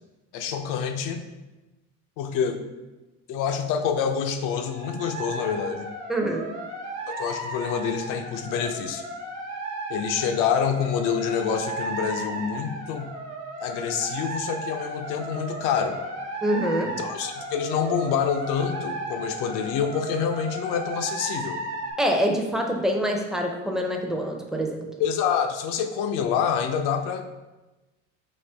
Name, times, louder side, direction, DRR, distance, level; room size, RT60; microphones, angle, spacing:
voice 1, 0.3-1.2 2.2-2.6 3.3-5.9 7.1-9.0 9.9-13.1 13.6-16.0 16.8-21.6 25.0-27.3, left 7 dB, 75° left, 6 dB, 0.5 m, -27 dB
sound 1, 4.5-21.9, right 1 dB, 55° right, 1.1 m, -35 dB
voice 2, 6.1-6.5 16.4-16.9 22.0-24.8, equal, ahead, 1 dB, 0.5 m, -25 dB
4.3 x 3.0 x 3.3 m, 1.1 s
cardioid pair, 115°, 32 cm